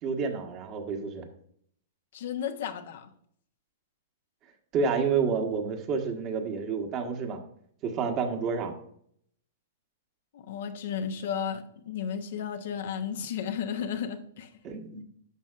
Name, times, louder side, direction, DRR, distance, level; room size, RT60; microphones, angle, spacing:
voice 1, 0.0-1.3 4.7-7.4 7.8-8.7 14.6-15.0, right 5 dB, 35° right, 4 dB, 1.4 m, -29 dB
voice 2, 2.1-3.1 10.3-14.5, left 8 dB, 65° left, 7 dB, 1.0 m, -33 dB
11.0 x 6.3 x 2.5 m, 0.65 s
hypercardioid pair, 115°, 0 cm